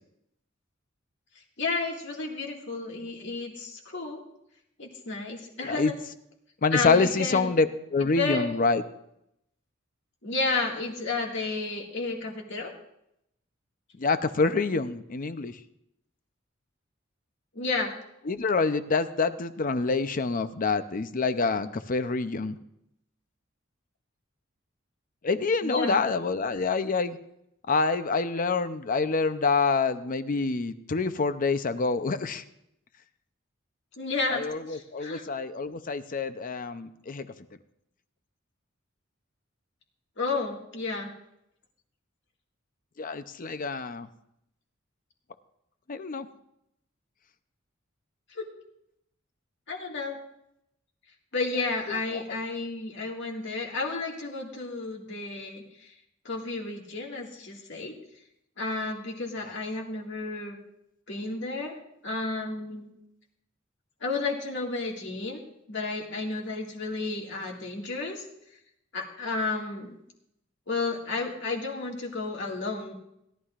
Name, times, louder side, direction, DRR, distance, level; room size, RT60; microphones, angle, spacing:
voice 1, 1.6-4.2 4.8-6.0 6.7-7.5 8.2-8.5 10.2-12.7 17.5-17.9 25.6-26.0 34.0-35.2 40.2-41.1 48.3-48.5 49.7-50.2 51.3-55.9 56.2-57.9 58.6-60.6 61.1-61.8 62.0-62.9 64.0-65.4 65.7-68.2 68.9-70.0 70.7-72.9, left 3 dB, 65° left, 0 dB, 2.0 m, -32 dB
voice 2, 6.6-8.8 14.0-15.6 18.3-22.6 25.2-27.2 27.7-32.4 34.3-37.3 43.0-44.1 45.9-46.3 51.9-52.2, left 4 dB, 45° left, 11 dB, 0.6 m, -26 dB
17.5 x 11.5 x 2.5 m, 0.80 s
head